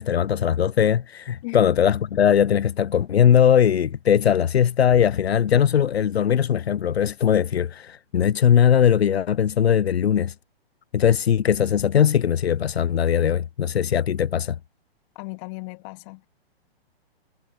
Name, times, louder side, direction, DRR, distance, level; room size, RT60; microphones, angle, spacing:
voice 1, 0.0-10.3 10.9-14.6, left 9 dB, 80° left, 1.0 m, -20 dB
voice 2, 15.1-16.3, left 31 dB, 30° left, 2.9 m, -36 dB
hypercardioid pair, 145°, 31 cm